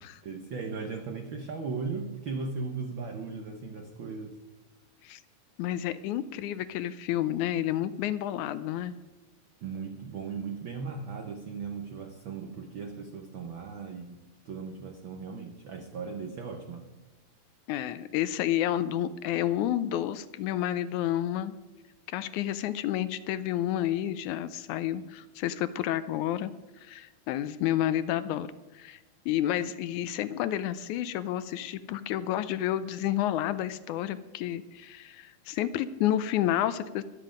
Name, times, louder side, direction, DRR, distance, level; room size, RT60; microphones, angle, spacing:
voice 1, 0.2-4.3 9.6-16.9, right 4 dB, 80° right, 5 dB, 1.1 m, -37 dB
voice 2, 5.6-8.9 17.7-21.5 22.1-26.5 26.8-29.0 29.3-37.0, left 12 dB, 80° left, 14 dB, 1.9 m, -30 dB
22.0 x 7.6 x 5.0 m, 1.1 s
omnidirectional pair, 3.6 m